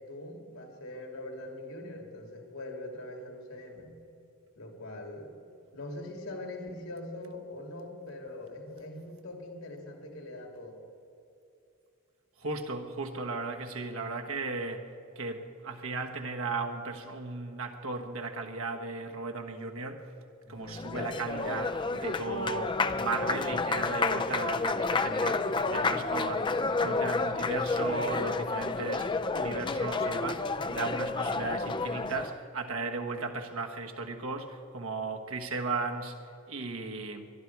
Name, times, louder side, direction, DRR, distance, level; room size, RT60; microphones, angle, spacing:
voice 1, 0.0-4.0 4.5-5.3 5.7-10.8, left 1 dB, 75° left, 2 dB, 2.7 m, -42 dB
voice 2, 12.4-14.8 15.1-20.0 20.5-26.5 26.8-36.2 36.5-37.3, right 3 dB, 75° right, 4 dB, 1.4 m, -36 dB
Applause, 20.5-32.4, left 3 dB, 20° left, 0.4 m, -30 dB
22.0 x 12.0 x 4.7 m, 2.6 s
head